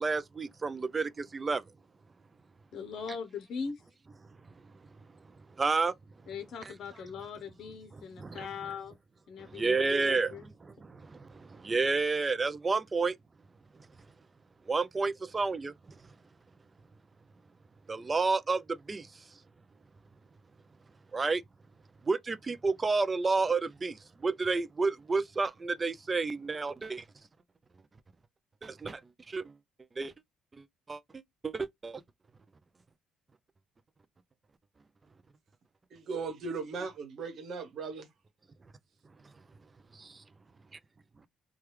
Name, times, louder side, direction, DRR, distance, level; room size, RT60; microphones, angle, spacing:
voice 1, 0.0-1.6 5.6-5.9 7.9-8.5 9.4-13.1 14.7-15.7 17.9-19.1 21.1-21.4 22.1-27.0 28.6-29.0 29.3-29.5 30.0-30.1 30.6-32.0 40.0-40.2, right 4 dB, 30° right, 0.4 m, -31 dB
voice 2, 2.7-3.8 6.3-9.0 9.3-10.5, left 6 dB, 65° left, 0.6 m, -40 dB
voice 3, 35.9-38.1, right 4 dB, 60° right, 1.0 m, -37 dB
3.1 x 2.2 x 3.1 m
supercardioid pair, 85°, 0 cm